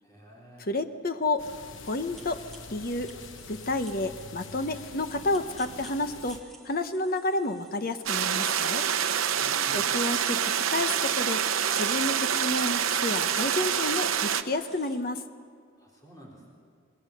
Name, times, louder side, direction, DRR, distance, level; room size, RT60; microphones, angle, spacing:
voice 1, 0.0-0.7 9.3-10.0 15.8-16.5, right 1 dB, 15° left, -4 dB, 4.1 m, -50 dB
voice 2, 0.7-1.5 1.8-2.4 2.7-3.1 3.5-8.9 9.7-11.4 11.7-15.2, left 2 dB, 45° left, 8 dB, 1.0 m, -30 dB
sound 1, 1.4-6.4, left 4 dB, 70° left, 1.0 m, -45 dB
sound 2, 1.6-15.0, right 2 dB, ahead, 2.3 m, -53 dB
sound 3, 8.1-14.4, right 8 dB, 85° right, 0.9 m, -26 dB
26.5 x 20.0 x 6.6 m, 2.2 s
head